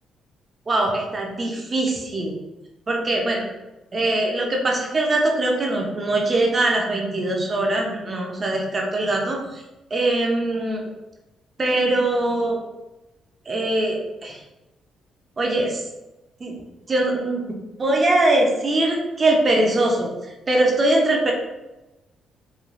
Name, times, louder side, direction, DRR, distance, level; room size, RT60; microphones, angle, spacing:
voice 1, 0.7-2.4 2.9-3.4 3.9-9.6 9.9-10.8 11.6-12.6 13.5-14.4 15.4-15.8 16.4-16.5 16.9-20.1 20.5-21.3, right 2 dB, 35° right, 0 dB, 0.5 m, -22 dB
3.1 x 2.2 x 2.5 m, 1.0 s
cardioid pair, 90°, 0 cm